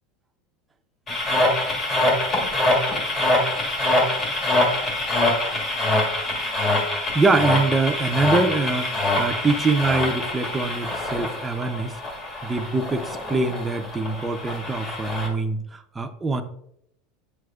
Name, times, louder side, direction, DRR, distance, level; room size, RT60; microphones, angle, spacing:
sound 1, 1.1-15.3, left 2 dB, 30° left, 1.7 m, -24 dB
voice 1, 7.1-12.0 12.4-16.4, right 3 dB, 10° right, 6 dB, 0.5 m, -24 dB
8.4 x 6.3 x 2.4 m, 0.74 s
supercardioid pair, 145°, 0 cm